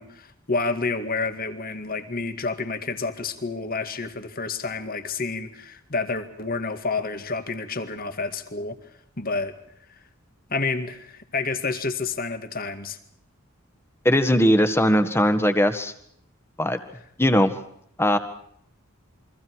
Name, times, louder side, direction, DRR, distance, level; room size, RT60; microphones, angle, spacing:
voice 1, 0.0-8.8 9.2-9.5 10.5-13.0, left 3 dB, 45° left, 9 dB, 2.1 m, -29 dB
voice 2, 14.0-15.9 16.6-16.8 17.2-17.5 18.0-18.2, equal, 10° left, 9 dB, 1.7 m, -19 dB
29.0 x 23.5 x 4.7 m, 0.66 s
head